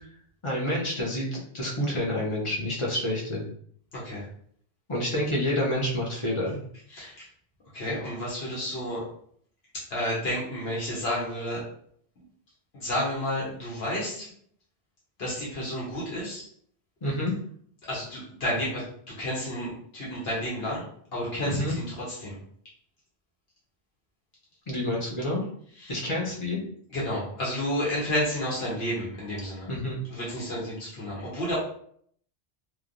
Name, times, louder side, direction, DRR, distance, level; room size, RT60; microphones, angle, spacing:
voice 1, 0.4-3.4 4.9-6.6 17.0-17.3 21.4-21.7 24.7-25.4 25.9-26.6 29.7-30.0, left 1 dB, 35° left, -3 dB, 0.6 m, -28 dB
voice 2, 6.9-7.2 7.7-9.0 9.9-11.6 12.7-14.3 15.2-16.4 17.9-20.9 21.1-22.4 25.8-26.0 26.9-29.7 30.1-31.6, equal, 70° left, -6 dB, 1.1 m, -31 dB
3.1 x 2.2 x 2.5 m, 0.63 s
omnidirectional pair, 1.1 m